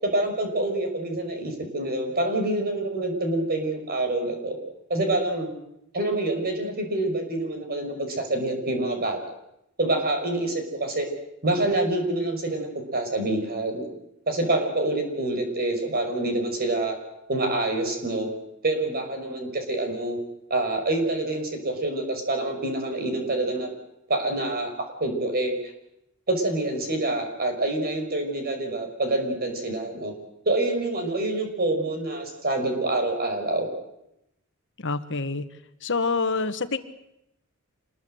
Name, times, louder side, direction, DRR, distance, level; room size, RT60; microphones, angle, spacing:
voice 1, 0.0-4.6 4.9-5.5 5.9-9.2 9.8-11.1 11.4-13.9 14.3-17.0 17.3-18.3 18.6-20.2 20.5-23.7 24.1-25.5 26.3-30.1 30.5-33.7, right 2 dB, 45° right, 4 dB, 5.9 m, -26 dB
voice 2, 34.8-35.4 35.8-36.8, left 4 dB, 60° left, 10 dB, 1.5 m, -26 dB
27.0 x 21.5 x 8.0 m, 0.82 s
head